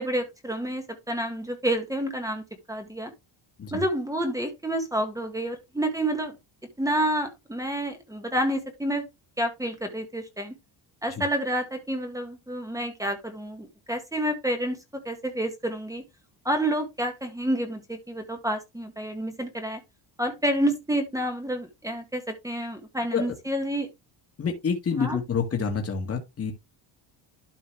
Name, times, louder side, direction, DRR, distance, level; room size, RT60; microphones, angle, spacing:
voice 1, 0.0-2.4 2.7-3.1 3.7-6.4 6.8-9.0 9.4-10.5 11.0-14.8 15.1-16.0 16.5-19.8 20.2-23.9 25.0-25.2, right 1 dB, 5° right, 1.8 m, -29 dB
voice 2, 24.4-26.5, left 6 dB, 30° left, 1.9 m, -27 dB
12.0 x 4.4 x 3.4 m
cardioid pair, 150°, 45 cm